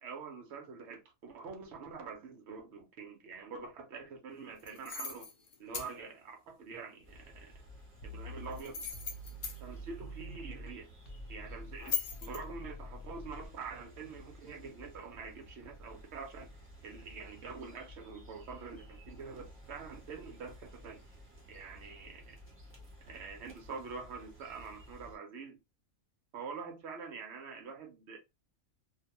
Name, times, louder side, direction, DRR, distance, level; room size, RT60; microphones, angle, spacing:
voice 1, 0.0-5.3 5.6-7.5 8.0-8.8 9.6-10.9 11.3-16.5 16.8-21.0 21.5-22.4 23.1-25.6 26.3-28.2, right 5 dB, 65° right, 0.7 m, -46 dB
sound 1, 4.6-5.9 8.5-9.6 11.8-12.4, left 7 dB, 65° left, 0.5 m, -38 dB
sound 2, 7.0-25.2, equal, 15° right, 0.6 m, -54 dB
sound 3, 8.0-10.7 11.0-13.5, right 1 dB, 85° left, 1.1 m, -47 dB
2.5 x 2.1 x 2.8 m
omnidirectional pair, 1.5 m